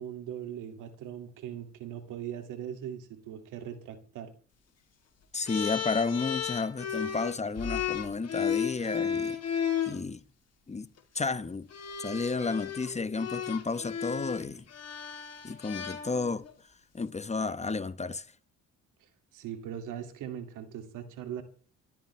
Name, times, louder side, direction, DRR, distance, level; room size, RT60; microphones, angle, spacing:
voice 1, 0.0-4.3 19.0-21.4, right 9 dB, 90° right, 2.2 m, -40 dB
voice 2, 5.3-9.4 9.9-10.2 10.7-10.9 11.1-11.7 12.0-14.6 15.4-16.4 16.9-18.2, left 4 dB, 20° left, 0.9 m, -32 dB
sound 1, 5.5-10.0 11.0-11.2 11.7-16.5, left 8 dB, 55° left, 2.7 m, -34 dB
27.0 x 13.5 x 3.2 m
cardioid pair, 90°, 30 cm